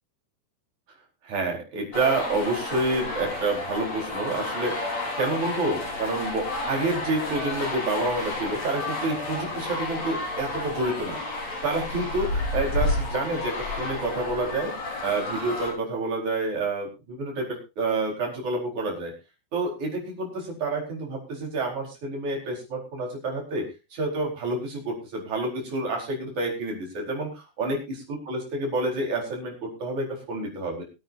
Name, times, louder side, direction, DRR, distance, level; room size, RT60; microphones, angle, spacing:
voice 1, 1.2-11.2 11.6-14.7 15.0-19.1 19.5-27.8 28.3-30.8, right 2 dB, 45° right, -1 dB, 5.7 m, -28 dB
sound 1, 1.9-15.7, left 2 dB, 40° left, 5.1 m, -31 dB
23.0 x 9.0 x 2.7 m, 0.28 s
omnidirectional pair, 4.7 m